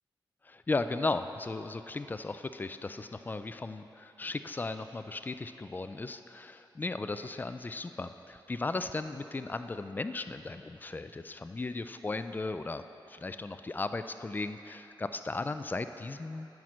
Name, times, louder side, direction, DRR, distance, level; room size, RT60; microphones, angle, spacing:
voice 1, 0.4-12.8 13.1-16.5, left 3 dB, 20° left, 10 dB, 0.3 m, -36 dB
9.2 x 5.9 x 6.2 m, 3.0 s
wide cardioid pair, 110°, 8 cm